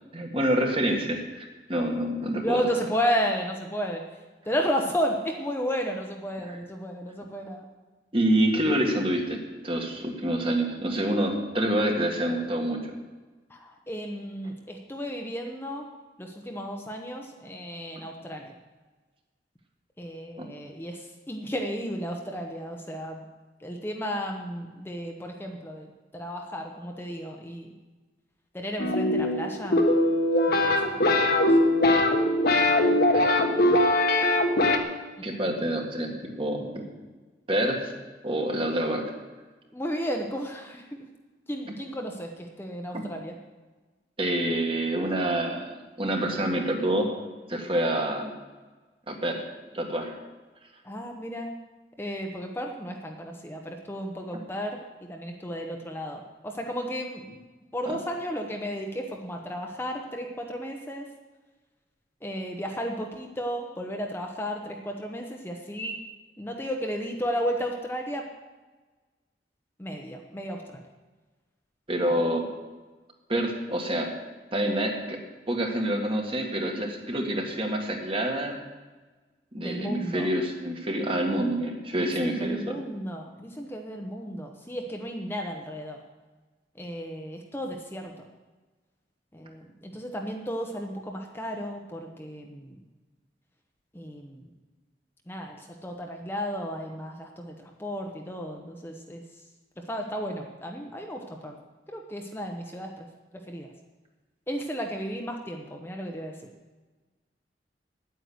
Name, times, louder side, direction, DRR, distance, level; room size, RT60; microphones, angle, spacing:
voice 1, 0.1-2.7 6.5-6.6 8.1-12.9 20.4-20.5 33.1-33.6 34.6-34.7 35.2-36.9 37.5-37.9 38.2-39.1 42.9-43.0 44.2-47.1 47.5-48.3 49.1-49.4 49.7-50.2 57.9-58.0 71.9-72.4 73.3-74.1 74.5-75.2 75.5-78.6 79.5-82.8, right 1 dB, 30° right, 2 dB, 1.9 m, -27 dB
voice 2, 2.4-4.0 4.4-7.6 13.5-15.9 16.2-18.5 20.0-23.2 23.6-27.7 28.5-29.8 30.5-31.5 32.9-33.3 33.6-33.8 39.7-41.1 41.5-43.3 50.8-51.5 52.0-57.4 57.7-61.1 62.2-65.9 66.4-68.2 69.8-70.8 72.0-72.1 79.6-80.3 82.0-86.0 86.8-88.1 89.3-92.8 93.9-94.5 95.3-99.2 99.9-101.6 101.9-103.1 103.5-103.7 104.5-106.3, equal, 15° left, 2 dB, 1.0 m, -33 dB
sound 1, 28.8-34.8, left 1 dB, 60° left, 1.4 m, -21 dB
9.8 x 9.3 x 7.9 m, 1.3 s
head